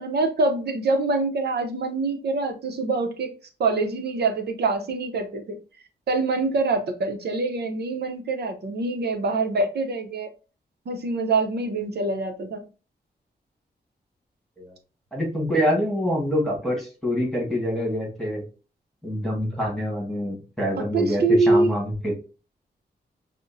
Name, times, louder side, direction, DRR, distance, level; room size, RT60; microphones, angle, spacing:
voice 1, 0.0-3.3 3.6-5.6 6.1-10.3 10.9-12.6 20.7-21.7, right 3 dB, 75° right, 0.7 m, -24 dB
voice 2, 15.1-18.4 19.0-22.1, equal, ahead, 1.5 m, -26 dB
5.1 x 2.1 x 2.5 m
wide cardioid pair, 125°, 17 cm